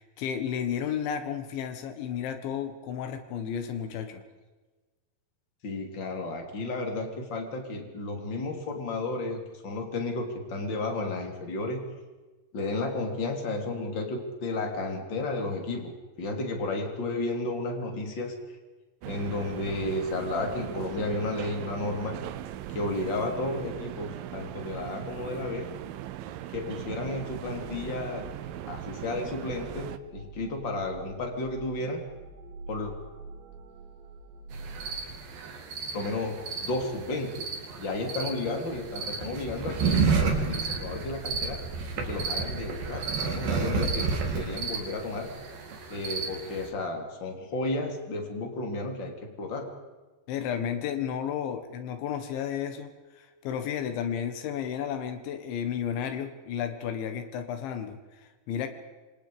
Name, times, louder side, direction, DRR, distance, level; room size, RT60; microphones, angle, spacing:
voice 1, 0.0-4.2 50.3-58.7, left 8 dB, 80° left, 8 dB, 3.9 m, -33 dB
voice 2, 5.6-11.8 12.5-18.3 19.1-22.2 22.7-25.7 26.5-28.2 28.7-32.0 32.7-32.9 35.9-37.5 37.8-41.6 42.0-45.3 45.9-49.7, left 2 dB, 25° left, 3 dB, 3.5 m, -33 dB
sound 1, 19.0-30.0, right 13 dB, 85° right, 2.0 m, -39 dB
sound 2, 26.9-35.1, right 2 dB, 70° right, 4.9 m, -46 dB
sound 3, 34.5-46.7, right 4 dB, 55° right, 4.0 m, -31 dB
27.5 x 26.0 x 5.1 m, 1.2 s
omnidirectional pair, 5.3 m